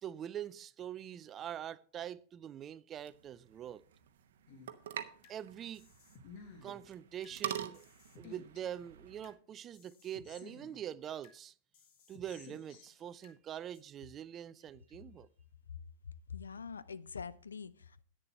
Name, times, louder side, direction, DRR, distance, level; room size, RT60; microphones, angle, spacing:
voice 1, 0.0-3.8 5.3-5.9 6.6-7.8 8.2-11.5 12.1-15.3, right 10 dB, 30° right, 0.5 m, -44 dB
sound 1, 2.9-9.3, right 10 dB, 60° right, 0.9 m, -46 dB
sound 2, 4.5-5.4 5.7-7.4 7.7-9.4 9.7-11.4 11.7-13.4 13.7-13.8, left 5 dB, 50° left, 1.8 m, -56 dB
voice 2, 16.3-18.0, left 6 dB, 75° left, 0.5 m, -44 dB
10.5 x 9.1 x 4.3 m
figure-of-eight pair, 90°, 0 cm